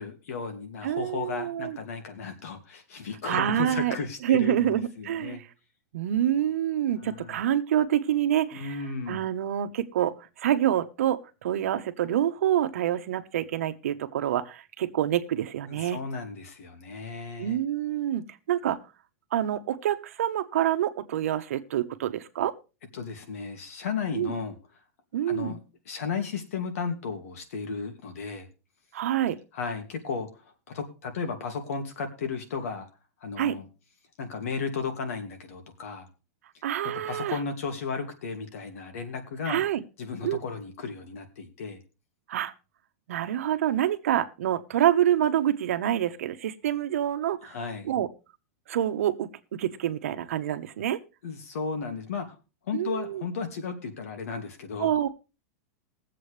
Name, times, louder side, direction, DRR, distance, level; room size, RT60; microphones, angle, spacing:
voice 1, 0.0-5.4 7.0-7.4 8.5-9.3 15.7-17.6 22.9-24.6 25.3-25.6 25.9-28.5 29.5-32.9 33.2-33.7 34.2-36.1 37.0-39.6 40.0-41.8 47.4-47.9 51.2-52.4 52.7-54.9, left 5 dB, 70° left, 2.4 m, -34 dB
voice 2, 0.8-1.8 3.2-4.0 4.2-5.4 5.9-8.8 9.1-16.0 17.4-18.8 19.3-22.5 24.2-24.4 25.1-25.6 28.9-29.4 33.4-33.5 36.6-37.4 39.5-39.8 40.2-40.4 42.3-42.5 43.1-47.6 47.8-48.1 48.7-51.0 52.7-53.2 54.8-55.1, right 11 dB, 65° right, 1.1 m, -27 dB
21.0 x 7.7 x 3.3 m
supercardioid pair, 180°, 8 cm